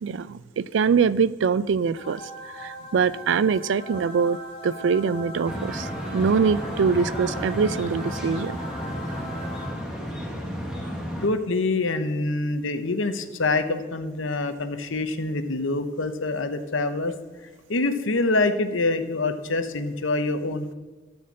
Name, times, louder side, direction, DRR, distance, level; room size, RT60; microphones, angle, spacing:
voice 1, 0.0-4.4 4.6-8.6, right 5 dB, 75° right, 18 dB, 0.3 m, -23 dB
sound 1, 2.0-10.2, right 1 dB, 30° left, 1.3 m, -40 dB
sound 2, 5.4-11.3, equal, 5° right, 1.3 m, -32 dB
voice 2, 11.2-17.1 17.7-20.7, left 2 dB, 85° left, 9 dB, 0.9 m, -25 dB
13.0 x 4.4 x 7.5 m, 1.3 s
head